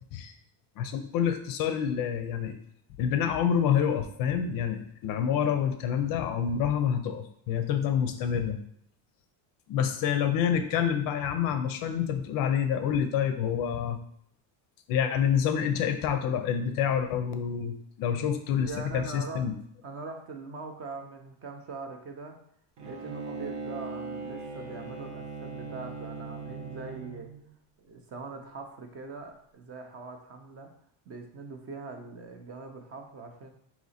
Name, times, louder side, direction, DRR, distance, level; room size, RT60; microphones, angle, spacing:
voice 1, 0.8-2.6 3.0-8.6 9.7-14.0 14.9-19.5, left 8 dB, 50° left, 7 dB, 0.4 m, -27 dB
voice 2, 18.6-19.5 19.8-22.4 22.8-27.3 27.8-30.7 31.1-33.5, right 3 dB, 35° right, 4 dB, 0.5 m, -42 dB
Bowed string instrument, 22.8-27.4, right 4 dB, 75° right, 1.1 m, -39 dB
3.9 x 2.9 x 4.1 m, 0.68 s
cardioid pair, 155°, 44 cm